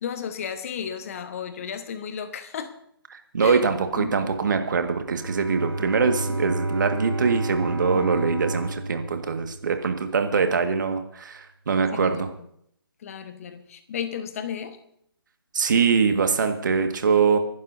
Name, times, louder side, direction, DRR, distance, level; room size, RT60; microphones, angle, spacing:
voice 1, 0.0-2.8 3.4-3.6 4.0-4.3 7.9-8.2 11.9-12.2 13.0-14.8, left 8 dB, 35° left, 9 dB, 1.3 m, -34 dB
voice 2, 3.1-12.3 15.5-17.4, right 5 dB, 50° right, 6 dB, 1.8 m, -23 dB
Bowed string instrument, 5.0-10.0, right 2 dB, 70° right, 3.1 m, -31 dB
29.5 x 11.5 x 2.7 m, 0.72 s
figure-of-eight pair, 145°, 13 cm